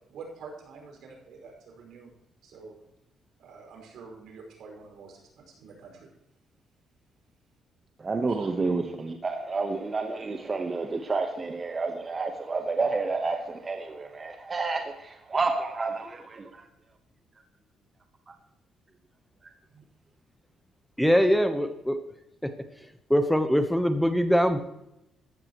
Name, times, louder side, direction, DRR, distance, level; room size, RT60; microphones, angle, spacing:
voice 1, 0.1-2.1 2.4-2.8 3.4-6.1 19.7-19.8, right 4 dB, 75° right, 5.3 m, -47 dB
voice 2, 8.0-16.7 17.3-17.4 18.3-18.4 19.4-19.5 21.1-21.3, right 3 dB, 30° right, 1.1 m, -30 dB
voice 3, 21.0-22.0 23.1-24.6, equal, ahead, 1.0 m, -22 dB
14.5 x 12.5 x 3.1 m
cardioid pair, 90°, 0 cm